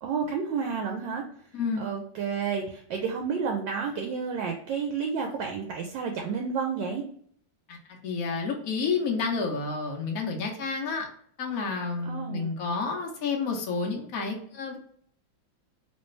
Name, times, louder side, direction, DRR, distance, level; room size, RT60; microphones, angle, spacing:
voice 1, 0.0-1.2 1.8-7.0 12.1-12.5, right 6 dB, 75° right, 2 dB, 1.2 m, -30 dB
voice 2, 1.5-1.8 7.7-7.8 8.0-11.1 11.4-14.8, left 4 dB, 65° left, 1 dB, 0.9 m, -30 dB
3.2 x 2.9 x 3.1 m, 0.63 s
omnidirectional pair, 2.2 m